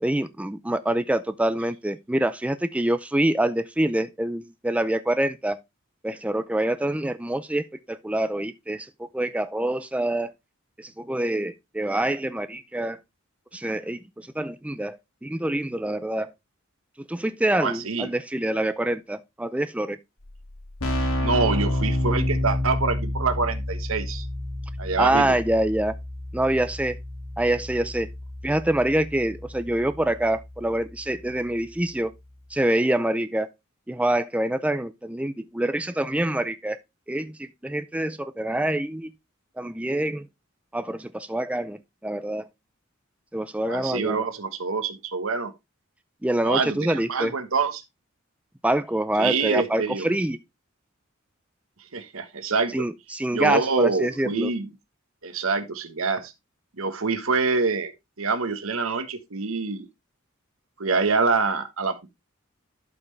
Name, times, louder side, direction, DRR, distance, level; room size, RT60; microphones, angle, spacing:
voice 1, 0.0-5.6 6.0-8.9 9.1-10.3 10.8-13.0 13.5-16.3 17.0-20.0 25.0-25.9 26.3-27.0 27.4-28.1 28.4-32.1 32.5-33.5 33.9-36.8 37.1-39.1 39.6-40.3 40.7-42.5 43.3-44.3 46.2-47.3 48.6-50.4 52.7-54.5, right 1 dB, 5° right, 0.4 m, -26 dB
voice 2, 17.5-18.1 21.2-24.3 24.8-25.2 43.7-45.5 46.4-47.8 49.2-50.1 51.9-52.8 53.3-54.7 55.2-56.3 56.8-57.9 58.2-59.9 60.8-62.1, right 4 dB, 75° right, 1.3 m, -26 dB
Keyboard (musical), 20.2-20.3 20.5-31.1, left 1 dB, 80° left, 2.4 m, -30 dB
12.0 x 5.6 x 3.3 m
head